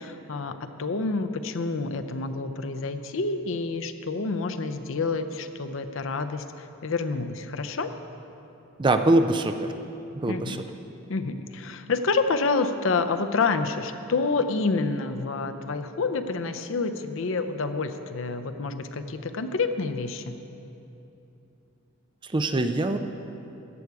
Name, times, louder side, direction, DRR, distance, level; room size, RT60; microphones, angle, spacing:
voice 1, 0.0-7.9 10.3-10.6 11.1-20.4, left 4 dB, 65° left, 9 dB, 0.6 m, -28 dB
voice 2, 8.8-9.7 10.2-10.6 22.2-23.0, right 2 dB, 25° right, 8 dB, 0.4 m, -23 dB
14.0 x 8.2 x 4.7 m, 2.9 s
head